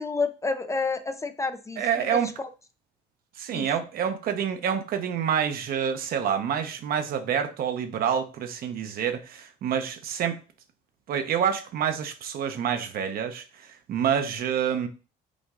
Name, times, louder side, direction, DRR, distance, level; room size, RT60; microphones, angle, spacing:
voice 1, 0.0-2.5 3.5-3.7, left 4 dB, 20° left, 0.4 m, -30 dB
voice 2, 1.8-2.3 3.4-10.4 11.1-14.9, right 8 dB, 60° right, 0.8 m, -27 dB
5.1 x 2.6 x 3.6 m
cardioid pair, 110°, 17 cm